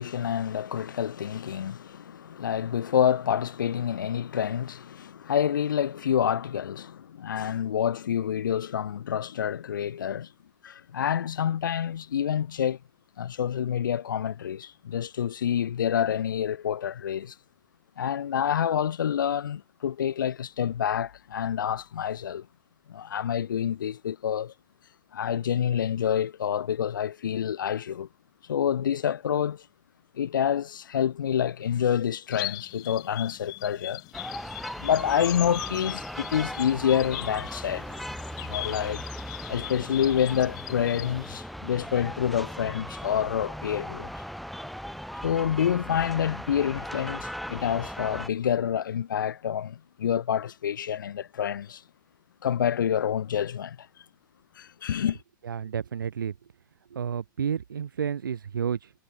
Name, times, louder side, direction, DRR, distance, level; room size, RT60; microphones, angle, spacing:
voice 1, 0.0-10.3 10.6-12.8 13.2-17.3 18.0-22.5 22.9-24.5 25.1-28.1 28.5-29.6 30.1-34.0 34.8-38.0 38.4-39.0 39.5-44.1 45.2-51.8 52.4-53.9 54.6-55.2, left 9 dB, 70° left, 1.7 m, -27 dB
sound 1, 32.3-41.4, left 19 dB, 35° left, 2.5 m, -40 dB
sound 2, 34.1-48.3, equal, ahead, 5.0 m, -38 dB
voice 2, 55.4-56.4 56.9-58.9, right 7 dB, 70° right, 2.8 m, -31 dB
figure-of-eight pair, 100°, 11 cm